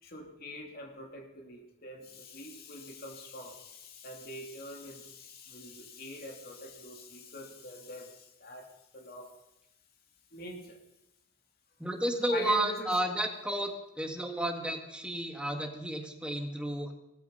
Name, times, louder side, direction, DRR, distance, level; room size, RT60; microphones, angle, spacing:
voice 1, 0.0-9.3 10.3-10.8 12.3-12.9, left 1 dB, 50° left, 2 dB, 3.0 m, -43 dB
voice 2, 11.8-16.9, right 1 dB, 5° right, 3 dB, 1.7 m, -32 dB
17.5 x 14.0 x 5.5 m, 0.87 s
head